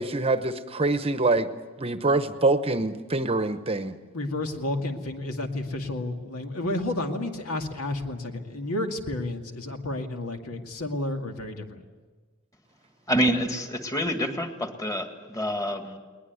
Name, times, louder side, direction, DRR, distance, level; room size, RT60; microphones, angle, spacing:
voice 1, 0.0-1.5 1.8-3.9, right 2 dB, 25° right, 10 dB, 0.9 m, -25 dB
voice 2, 4.1-11.8, left 1 dB, 80° left, 4 dB, 2.3 m, -31 dB
voice 3, 13.1-16.0, equal, 15° left, 5 dB, 2.0 m, -27 dB
21.0 x 20.0 x 9.6 m, 1.4 s
head